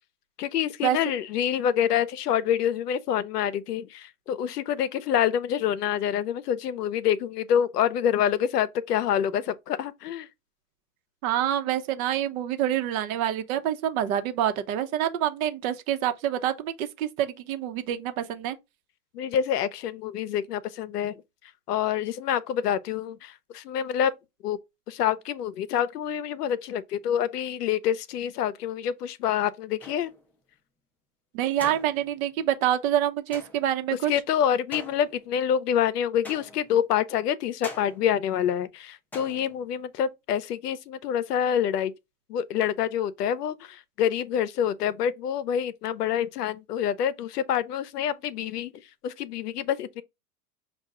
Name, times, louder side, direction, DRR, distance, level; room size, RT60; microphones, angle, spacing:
voice 1, 0.4-10.3 19.1-21.2 21.7-24.1 24.4-24.6 24.9-30.1 34.1-41.9 42.3-48.7 49.0-50.0, left 9 dB, 90° left, 0.6 m, -27 dB
voice 2, 11.2-18.6 31.3-34.1, right 11 dB, 60° right, 0.9 m, -27 dB
sound 1, 29.8-30.3 31.6-32.3 33.3-33.8 34.7-35.5 36.2-36.9 37.6-38.3 39.1-39.8, left 2 dB, 5° left, 0.4 m, -44 dB
5.3 x 2.4 x 3.6 m
hypercardioid pair, 110°, 46 cm